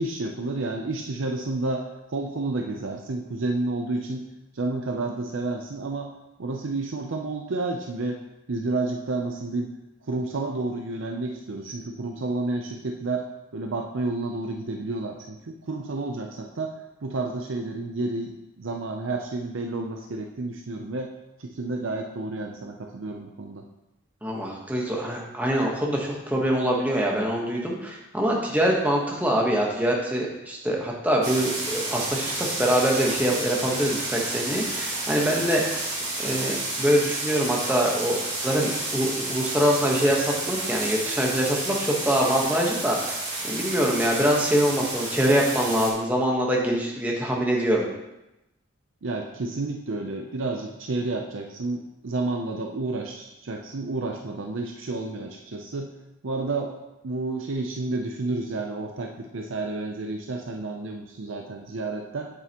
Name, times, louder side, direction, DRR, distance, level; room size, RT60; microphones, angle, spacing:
voice 1, 0.0-4.2 4.5-6.1 6.4-8.2 8.5-9.7 10.0-13.2 13.5-21.1 21.4-23.6 49.0-55.9 56.2-56.7 57.0-62.3, right 2 dB, 70° right, 2 dB, 0.6 m, -30 dB
voice 2, 24.2-35.8 36.2-38.2 38.4-47.9, equal, 10° right, -2 dB, 1.2 m, -24 dB
sound 1, 31.2-45.9, right 2 dB, 30° right, 2.5 m, -31 dB
8.2 x 7.7 x 3.0 m, 0.94 s
head